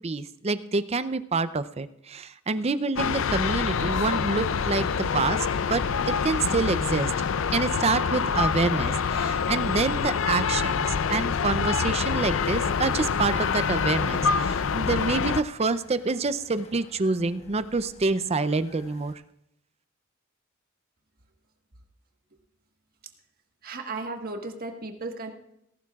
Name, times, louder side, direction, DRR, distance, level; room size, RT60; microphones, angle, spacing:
voice 1, 0.0-7.1 7.5-19.1, right 3 dB, 30° right, 14 dB, 0.5 m, -27 dB
sound 1, 3.0-15.4, left 6 dB, 70° left, 0.5 m, -26 dB
sound 2, 12.1-19.1, left 2 dB, 35° left, 1.4 m, -50 dB
voice 2, 23.6-25.3, right 3 dB, 45° right, 4 dB, 1.4 m, -35 dB
18.5 x 12.0 x 2.4 m, 0.81 s
head